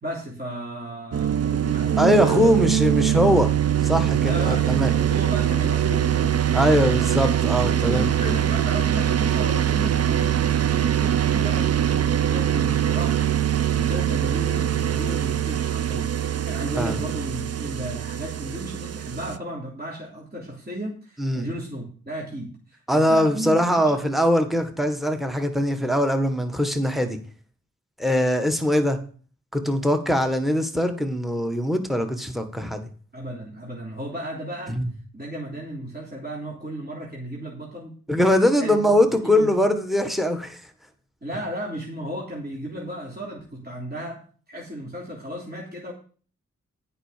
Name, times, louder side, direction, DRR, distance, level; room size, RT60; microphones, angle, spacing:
voice 1, 0.0-3.0 4.2-7.1 7.6-24.0 33.1-34.8 35.1-37.9 38.6-38.9 39.2-39.7 41.2-44.2 44.5-45.9, right 1 dB, 30° right, -4 dB, 3.3 m, -34 dB
sound 1, 1.1-19.4, right 10 dB, 50° right, 0.6 m, -23 dB
voice 2, 2.0-3.5 3.8-4.9 6.5-8.1 16.8-17.0 21.2-21.5 22.9-27.2 28.0-29.0 29.5-32.9 34.7-34.9 38.1-40.6, equal, ahead, 7 dB, 1.7 m, -22 dB
9.1 x 5.7 x 6.8 m, 0.41 s
cardioid pair, 45°, 31 cm